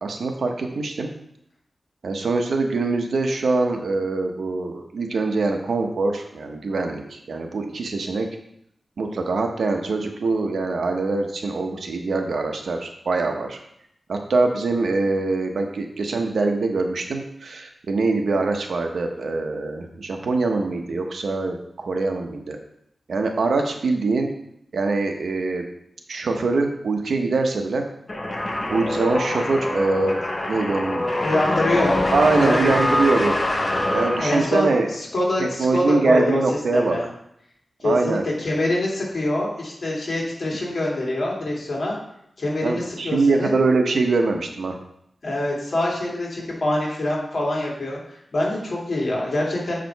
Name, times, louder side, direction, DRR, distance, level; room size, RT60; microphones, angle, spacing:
voice 1, 0.0-1.1 2.0-8.3 9.0-13.6 14.1-22.6 23.1-24.3 24.7-25.6 26.1-27.8 28.7-30.1 30.5-31.0 32.1-33.3 33.9-34.9 35.4-37.0 37.8-38.2 42.6-44.8, right 3 dB, 80° right, 4 dB, 0.9 m, -23 dB
sound 1, 28.1-34.8, left 1 dB, 30° left, 1.1 m, -24 dB
voice 2, 31.2-32.0 32.4-32.8 34.2-36.4 36.7-37.0 37.8-41.9 42.4-43.5 45.2-48.0 48.3-49.8, left 1 dB, 55° left, -3 dB, 2.4 m, -24 dB
6.9 x 5.0 x 4.6 m, 0.75 s
wide cardioid pair, 135°, 0 cm